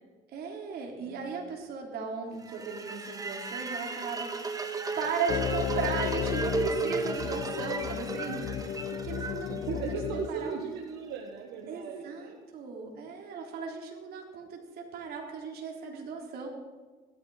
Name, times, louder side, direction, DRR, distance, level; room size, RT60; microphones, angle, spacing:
voice 1, 0.3-9.8 10.3-10.5 11.7-16.5, right 5 dB, 65° right, 1 dB, 3.6 m, -37 dB
voice 2, 1.0-1.5 9.2-12.4, right 6 dB, 85° right, 1 dB, 1.6 m, -38 dB
sound 1, 2.4-10.5, right 3 dB, 20° right, 1.4 m, -35 dB
sound 2, 5.3-10.3, left 10 dB, 55° left, 0.7 m, -34 dB
16.5 x 13.0 x 5.0 m, 1.4 s
cardioid pair, 110°, 17 cm